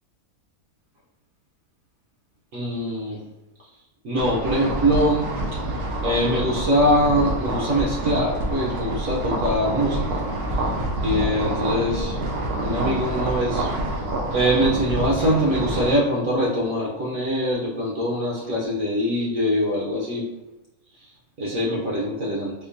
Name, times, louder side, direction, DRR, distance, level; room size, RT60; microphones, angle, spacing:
voice 1, 2.5-3.2 4.0-5.8 6.0-10.3 11.0-12.2 12.6-13.7 14.3-20.3 21.0-21.1 21.4-22.5, equal, 65° right, -5 dB, 1.0 m, -23 dB
sound 1, 4.2-15.9, right 1 dB, 85° right, 1.2 m, -27 dB
4.4 x 2.2 x 2.5 m, 1.0 s
omnidirectional pair, 1.6 m